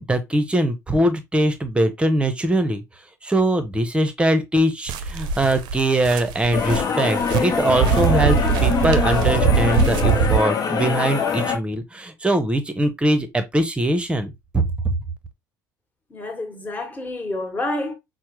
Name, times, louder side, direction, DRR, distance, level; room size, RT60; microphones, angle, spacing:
voice 1, 0.0-2.8 3.2-15.0, right 1 dB, 10° right, 0.8 m, -22 dB
sound 1, 4.9-10.4, right 6 dB, 50° right, 0.6 m, -22 dB
sound 2, 6.5-11.6, left 6 dB, 40° left, 1.2 m, -24 dB
voice 2, 16.1-17.9, left 2 dB, 15° left, 1.4 m, -28 dB
5.7 x 2.1 x 3.1 m
figure-of-eight pair, 60°, 10 cm